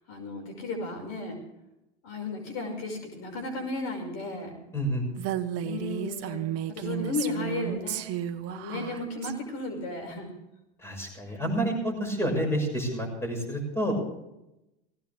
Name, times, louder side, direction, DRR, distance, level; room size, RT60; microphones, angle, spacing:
voice 1, 0.1-1.4 2.0-4.6 5.6-6.4 6.7-8.1 8.5-10.3 11.3-12.0, left 2 dB, 55° left, 3 dB, 5.8 m, -34 dB
voice 2, 4.7-5.0 10.8-13.9, right 1 dB, 5° left, 2 dB, 6.3 m, -29 dB
Female speech woman speaking, 5.2-9.3, right 10 dB, 45° right, 1.4 m, -33 dB
19.0 x 17.0 x 3.5 m, 0.88 s
hypercardioid pair, 105°, 33 cm